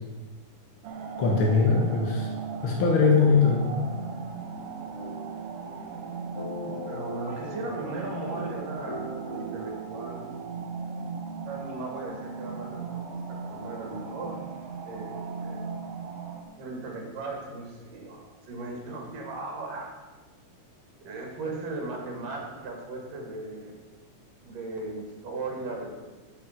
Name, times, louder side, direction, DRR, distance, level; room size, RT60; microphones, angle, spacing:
sound 1, 0.8-16.4, right 5 dB, 65° right, 1.6 m, -38 dB
voice 1, 1.2-2.3 2.6-3.7, left 4 dB, 45° left, -1 dB, 2.1 m, -21 dB
sound 2, 5.0-10.5, equal, 10° left, 1.6 m, -41 dB
voice 2, 6.7-10.3 11.4-14.5 14.9-15.8 16.6-19.9 21.0-23.8 24.4-25.9, right 2 dB, 80° right, 1 dB, 3.7 m, -37 dB
9.2 x 8.3 x 6.6 m, 1.3 s
omnidirectional pair, 3.7 m